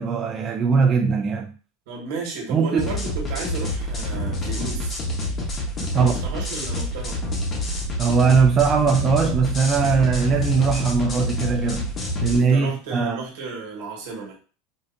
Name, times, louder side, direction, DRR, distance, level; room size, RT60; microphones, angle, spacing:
voice 1, 0.0-1.5 2.5-2.9 5.8-6.1 8.0-11.9 12.2-13.2, right 5 dB, 20° right, 0.3 m, -20 dB
voice 2, 1.9-5.0 5.9-7.2 12.4-14.3, right 3 dB, 60° right, 1.6 m, -33 dB
sound 1, 2.8-12.4, left 1 dB, 20° left, 1.0 m, -27 dB
5.0 x 2.6 x 2.7 m
supercardioid pair, 175°, 0 cm